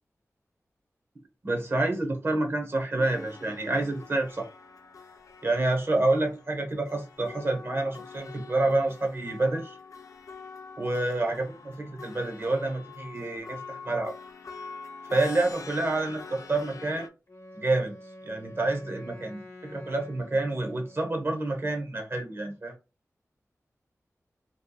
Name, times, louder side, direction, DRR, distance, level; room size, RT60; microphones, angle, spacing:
voice 1, 1.4-4.5 5.4-9.8 10.8-14.1 15.1-17.1 17.5-17.9 18.2-22.7, right 2 dB, 45° right, 0.8 m, -28 dB
sound 1, 3.0-17.1, left 4 dB, 75° left, 0.4 m, -45 dB
Wind instrument woodwind instrument, 17.3-21.3, left 1 dB, 60° left, 0.8 m, -47 dB
2.8 x 2.2 x 2.3 m
wide cardioid pair, 85°, 6 cm